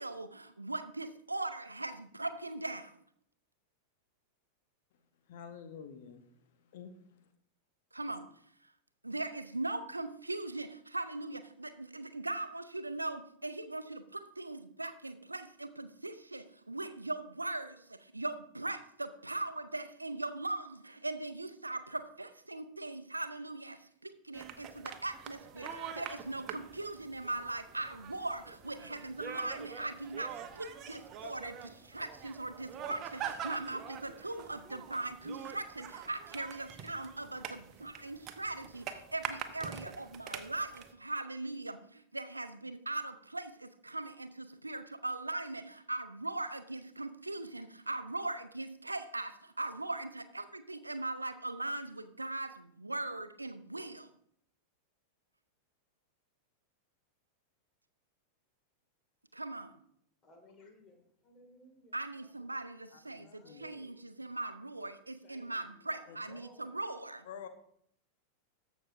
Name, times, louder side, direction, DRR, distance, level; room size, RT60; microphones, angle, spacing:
voice 1, 0.0-3.0 7.9-8.3 9.0-54.1 59.3-59.8 61.9-67.3, right 2 dB, 85° right, 11 dB, 0.6 m, -40 dB
voice 2, 5.3-6.2 6.7-6.9 63.2-63.6 67.3-67.5, left 7 dB, 55° left, 8 dB, 0.8 m, -47 dB
sound 1, 24.3-40.9, right 8 dB, 35° right, 0.8 m, -45 dB
voice 3, 60.2-62.7 63.2-64.0 65.2-66.8, left 2 dB, 30° left, 4 dB, 2.2 m, -60 dB
14.0 x 6.2 x 2.6 m, 0.67 s
figure-of-eight pair, 90°, 0 cm